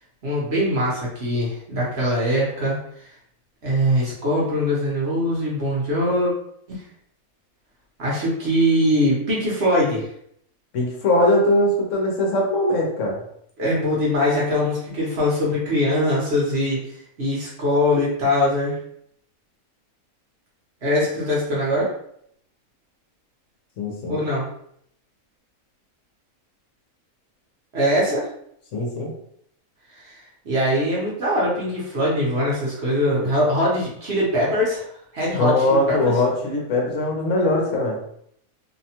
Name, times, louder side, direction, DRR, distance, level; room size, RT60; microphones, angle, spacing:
voice 1, 0.2-2.8 3.6-6.3 6.7-6.8 8.0-10.1 13.6-18.8 20.8-21.9 24.1-24.5 27.7-28.3 30.0-30.2 30.4-34.9 35.1-36.1, equal, 50° right, -5 dB, 1.0 m, -22 dB
voice 2, 10.7-13.2 23.8-24.2 28.7-29.1 35.4-38.0, left 1 dB, 65° left, -1 dB, 0.9 m, -21 dB
2.8 x 2.2 x 2.8 m, 0.70 s
omnidirectional pair, 1.5 m